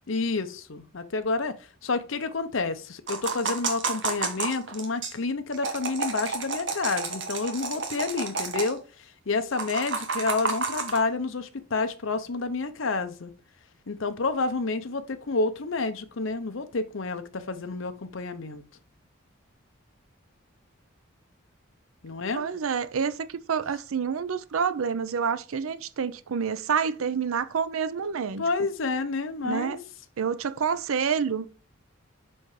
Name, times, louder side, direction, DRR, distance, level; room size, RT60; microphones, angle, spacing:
voice 1, 0.1-1.6 1.8-13.3 13.9-18.6 22.0-22.4 28.4-29.8, left 3 dB, 70° left, 0.8 m, -29 dB
sound 1, 3.1-5.1 5.5-8.7 9.5-11.0, right 4 dB, 60° right, 1.2 m, -31 dB
voice 2, 22.4-28.4 29.4-29.8 30.2-31.5, right 6 dB, 90° right, 0.5 m, -28 dB
5.5 x 4.3 x 4.8 m
head